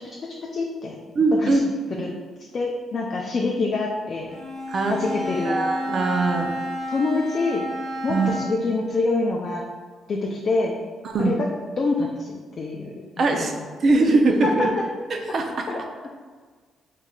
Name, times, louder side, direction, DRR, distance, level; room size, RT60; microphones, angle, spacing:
voice 1, 0.5-1.0 1.4-1.6 2.0-2.1 2.5-4.3 4.9-5.6 6.9-7.6 8.0-9.6 10.1-10.7 11.2-11.4 11.8-13.7 14.4-14.8 15.7-15.8, left 3 dB, 50° left, -1 dB, 0.4 m, -26 dB
voice 2, 1.1-2.0 4.7-5.0 5.4-6.5 8.1-8.5 11.0-11.4 13.2-13.5 13.8-14.7 15.1-15.7, right 3 dB, 50° right, 3 dB, 0.5 m, -21 dB
Bowed string instrument, 4.3-8.7, equal, 75° right, 1.2 m, -31 dB
3.6 x 3.1 x 2.3 m, 1.5 s
cardioid pair, 90°, 0 cm